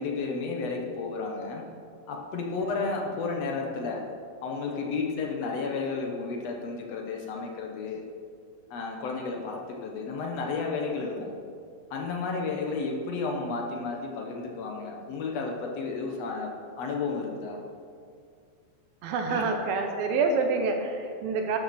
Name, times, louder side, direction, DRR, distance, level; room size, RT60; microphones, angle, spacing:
voice 1, 0.0-1.7 2.1-4.1 4.4-8.0 8.7-11.4 11.9-16.5 16.8-17.6 19.3-19.4, left 4 dB, 65° left, 1 dB, 1.7 m, -32 dB
voice 2, 19.0-21.6, right 4 dB, 80° right, 4 dB, 2.7 m, -27 dB
12.5 x 11.5 x 4.3 m, 2.2 s
omnidirectional pair, 4.3 m